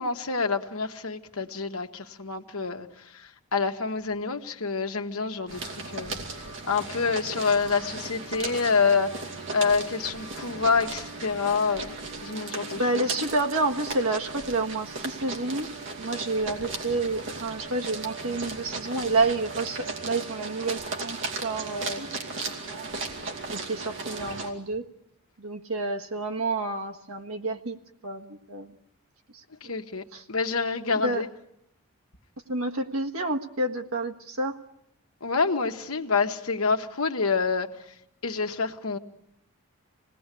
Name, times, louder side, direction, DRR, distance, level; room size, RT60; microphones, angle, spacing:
voice 1, 0.0-2.9 3.5-6.2 6.7-9.2 9.5-11.9 12.2-13.0 29.6-31.3 35.2-37.7 38.2-39.0, left 4 dB, 75° left, 1.4 m, -27 dB
sound 1, 5.5-24.5, right 3 dB, 55° right, 2.6 m, -36 dB
voice 2, 12.8-23.0 23.5-24.9 25.4-27.8 28.0-28.7 29.3-29.7 30.1-30.2 30.9-31.2 32.5-34.6, right 2 dB, 75° right, 1.5 m, -29 dB
26.5 x 18.5 x 8.4 m
head